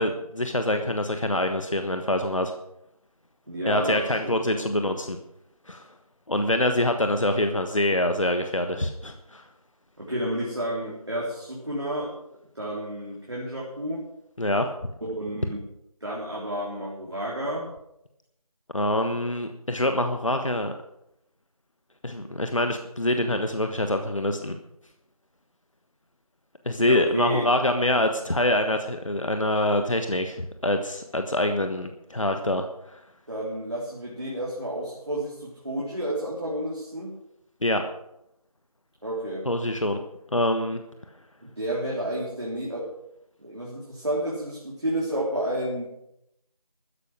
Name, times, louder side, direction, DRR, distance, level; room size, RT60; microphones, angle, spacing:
voice 1, 0.0-2.5 3.7-5.2 5.7-5.8 6.3-9.4 14.4-14.7 18.7-20.7 22.0-24.5 26.6-32.7 32.9-33.0 37.6-37.8 39.4-40.0 40.3-40.8, left 1 dB, 55° left, 6 dB, 1.3 m, -25 dB
voice 2, 3.5-4.7 10.0-12.1 12.6-14.0 15.0-15.6 16.0-17.7 26.7-27.4 33.3-37.2 39.0-39.4 41.4-42.9 43.4-45.9, right 1 dB, 45° right, -5 dB, 3.6 m, -31 dB
13.5 x 9.9 x 6.3 m, 0.82 s
figure-of-eight pair, 175°, 19 cm